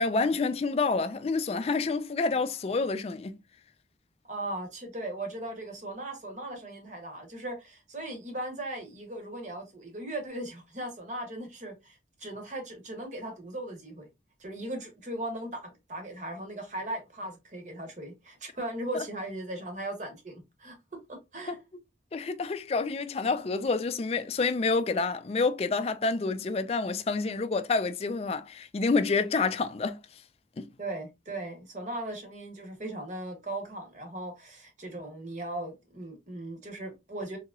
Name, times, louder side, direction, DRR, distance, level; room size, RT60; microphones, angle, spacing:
voice 1, 0.0-3.3 18.9-19.0 21.5-21.6 22.1-30.0 30.6-30.7, left 4 dB, 35° left, 0.3 m, -28 dB
voice 2, 4.2-14.1 14.4-20.8 21.1-21.6 30.8-37.4, right 1 dB, 40° right, 1.0 m, -38 dB
3.7 x 3.0 x 2.3 m
head